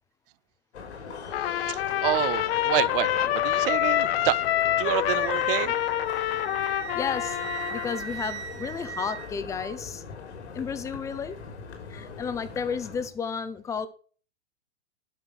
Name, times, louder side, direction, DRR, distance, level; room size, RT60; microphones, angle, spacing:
sound 1, 0.7-13.1, left 5 dB, 90° left, 4.1 m, -41 dB
Trumpet, 1.3-8.0, left 13 dB, 60° left, 1.0 m, -26 dB
voice 1, 1.4-4.4 4.8-5.7, right 16 dB, 55° right, 0.6 m, -28 dB
Wind instrument woodwind instrument, 5.2-9.8, right 9 dB, 75° right, 2.4 m, -39 dB
voice 2, 6.9-7.4 7.7-10.0 10.5-11.4 11.9-13.9, left 6 dB, 10° left, 0.5 m, -32 dB
11.0 x 5.8 x 6.3 m
supercardioid pair, 155°, 34 cm